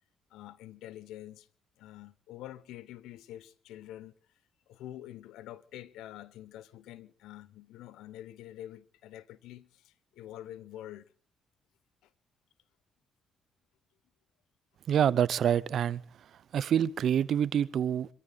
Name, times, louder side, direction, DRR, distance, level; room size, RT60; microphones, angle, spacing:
voice 1, 0.3-1.5 1.8-4.1 4.7-11.1 12.0-12.1, left 13 dB, 85° left, 0.8 m, -46 dB
voice 2, 14.9-16.0 16.5-18.1, right 9 dB, 65° right, 0.7 m, -26 dB
25.5 x 14.0 x 4.0 m
supercardioid pair, 65°, 0 cm